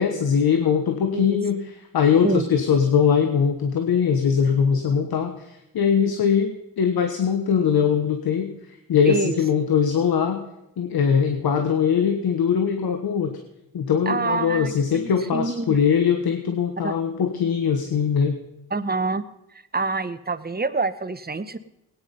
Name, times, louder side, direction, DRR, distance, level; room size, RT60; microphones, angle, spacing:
voice 1, 0.0-10.4 10.8-13.4 13.7-18.4, left 7 dB, 80° left, 6 dB, 1.3 m, -21 dB
voice 2, 9.1-9.4 14.1-15.8 16.8-16.9 18.7-19.2 19.7-21.6, right 3 dB, 25° right, 12 dB, 1.0 m, -26 dB
18.5 x 9.6 x 5.4 m, 0.87 s
cardioid pair, 60°, 37 cm